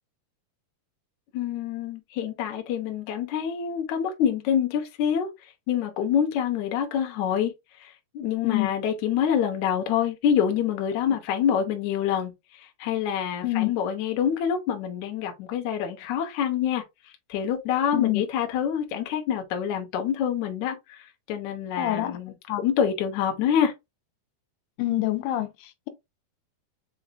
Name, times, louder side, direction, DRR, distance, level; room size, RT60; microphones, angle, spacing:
voice 1, 1.3-5.3 5.7-7.5 7.8-16.8 17.3-21.0 21.3-23.7, left 8 dB, 75° left, 1.8 m, -26 dB
voice 2, 21.8-22.2 22.5-22.6 24.8-25.9, left 15 dB, 90° left, 2.7 m, -26 dB
7.0 x 2.4 x 2.6 m
omnidirectional pair, 4.5 m